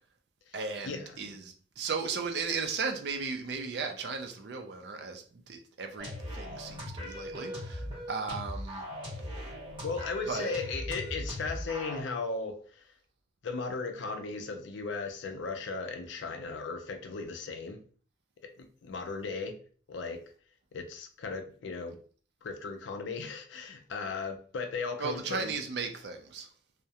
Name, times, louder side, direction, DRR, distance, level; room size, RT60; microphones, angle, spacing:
voice 1, 0.5-8.9 9.3-9.5 10.3-10.5 25.0-26.5, right 4 dB, 60° right, 0.4 m, -36 dB
sound 1, 6.0-12.0, equal, 25° right, 0.9 m, -39 dB
voice 2, 9.8-12.9 13.4-17.8 18.6-19.6 19.9-20.2 20.7-22.0 22.4-25.5, left 4 dB, 75° left, 0.4 m, -36 dB
2.3 x 2.1 x 2.7 m
head